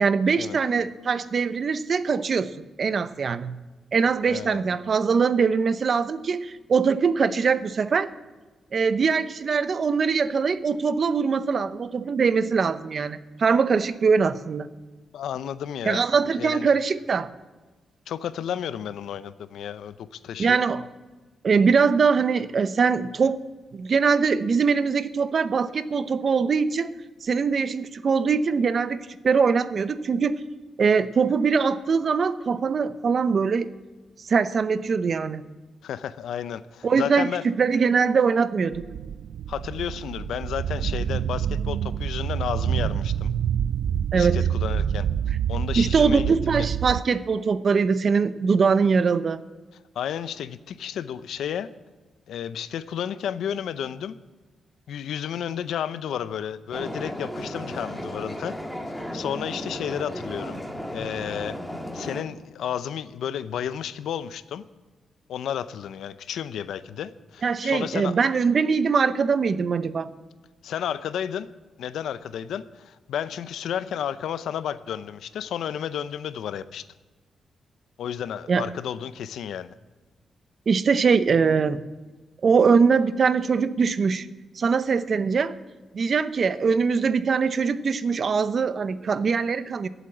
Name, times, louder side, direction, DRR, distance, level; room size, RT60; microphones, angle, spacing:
voice 1, 0.0-3.5 3.9-8.1 8.7-14.7 15.8-17.3 20.4-20.9 21.4-23.4 23.7-26.9 27.2-30.4 30.8-33.7 34.2-35.5 36.8-38.8 44.1-44.4 45.8-49.4 67.4-70.1 78.5-78.6 80.7-81.8 82.4-84.3 84.6-85.6 85.9-89.9, right 5 dB, 50° right, 14 dB, 0.7 m, -22 dB
voice 2, 4.3-4.6 15.1-16.0 16.4-16.7 18.1-20.6 35.8-37.4 39.5-43.3 44.1-45.1 45.5-46.3 49.9-51.7 52.3-54.2 54.9-58.6 58.9-60.6 60.9-61.6 61.9-64.6 65.3-68.2 70.6-71.5 71.8-76.8 78.0-79.7, left 9 dB, 85° left, 14 dB, 0.6 m, -32 dB
sound 1, 38.7-47.0, right 9 dB, 80° right, 0.3 m, -27 dB
sound 2, 56.7-62.2, equal, 5° left, 1.7 m, -34 dB
15.0 x 8.3 x 8.7 m, 1.3 s
cardioid pair, 90°, 0 cm